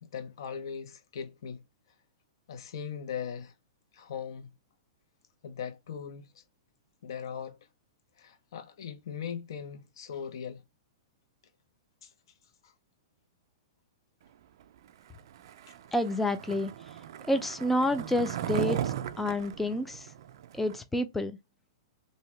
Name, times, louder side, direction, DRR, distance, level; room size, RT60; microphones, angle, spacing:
voice 1, 0.1-1.6 2.5-3.5 3.9-4.5 5.4-6.4 7.0-7.6 8.2-10.6 12.0-12.1 12.6-12.7, left 7 dB, 70° left, 0.7 m, -39 dB
Skateboard, 15.4-20.8, right 11 dB, 65° right, 0.3 m, -37 dB
voice 2, 15.9-16.7 17.3-20.1 20.5-21.4, left 1 dB, 5° left, 0.4 m, -29 dB
2.8 x 2.7 x 3.2 m
hypercardioid pair, 120°, 3 cm